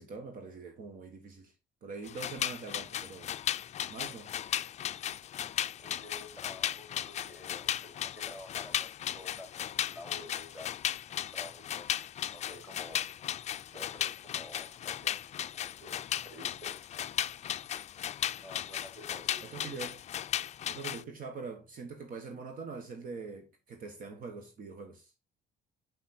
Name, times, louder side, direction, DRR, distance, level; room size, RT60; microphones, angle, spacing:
voice 1, 0.0-1.5 1.8-3.3 3.9-4.3 19.4-20.0 20.7-25.1, right 4 dB, 55° right, 1.4 m, -43 dB
sound 1, 2.0-21.0, left 11 dB, 40° left, 0.4 m, -36 dB
voice 2, 5.8-10.7 11.1-12.0 12.3-13.1 13.7-15.2 15.5-16.8 18.4-19.7, left 1 dB, 10° right, 3.7 m, -50 dB
6.3 x 5.8 x 4.2 m
cardioid pair, 110°, 17 cm